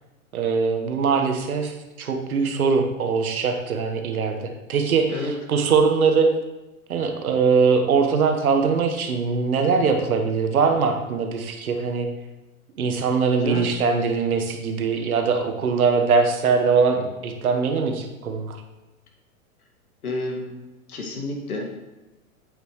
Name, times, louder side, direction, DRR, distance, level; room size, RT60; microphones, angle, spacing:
voice 1, 0.3-1.7 2.0-6.3 6.9-12.1 12.8-18.6, right 5 dB, 80° right, 4 dB, 1.4 m, -22 dB
voice 2, 20.0-20.5 20.9-21.7, left 2 dB, 90° left, 1 dB, 2.0 m, -29 dB
8.4 x 8.0 x 3.2 m, 1.0 s
hypercardioid pair, 115°, 43 cm